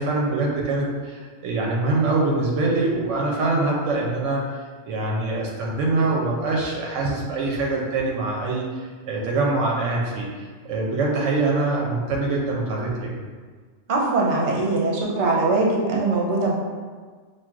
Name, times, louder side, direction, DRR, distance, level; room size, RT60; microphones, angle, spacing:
voice 1, 0.0-13.1, right 2 dB, 85° right, -3 dB, 1.0 m, -24 dB
voice 2, 13.9-16.5, right 3 dB, 65° right, -3 dB, 1.0 m, -21 dB
5.9 x 2.4 x 2.4 m, 1.5 s
omnidirectional pair, 1.3 m